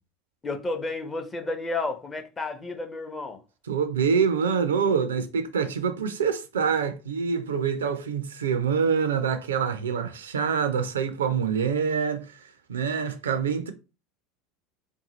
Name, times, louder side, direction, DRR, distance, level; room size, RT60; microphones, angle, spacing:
voice 1, 0.4-3.4, left 3 dB, 20° left, 0.6 m, -31 dB
voice 2, 3.7-12.3 12.7-13.7, right 6 dB, 75° right, 0.4 m, -25 dB
2.6 x 2.4 x 2.9 m
figure-of-eight pair, 75°, 0 cm